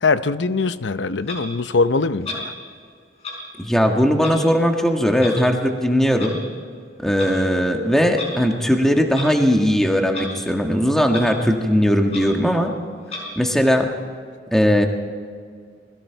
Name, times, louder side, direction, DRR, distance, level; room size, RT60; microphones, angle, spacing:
voice 1, 0.0-2.5, left 4 dB, 80° left, 13 dB, 0.7 m, -21 dB
Clock, 1.2-1.4 2.2-2.5 3.2-3.4 4.2-4.4 5.2-5.3 6.2-6.3 7.0-7.3 8.1-8.3 9.1-9.3 10.1-10.3 10.6-10.7 11.1-11.3 11.7-11.8 12.1-12.2 13.1-13.2, left 3 dB, 35° left, 5.8 m, -32 dB
voice 2, 3.6-6.4 7.0-12.7 13.3-13.9 14.5-14.9, equal, 5° left, 2 dB, 1.5 m, -18 dB
29.0 x 21.0 x 4.6 m, 2.1 s
head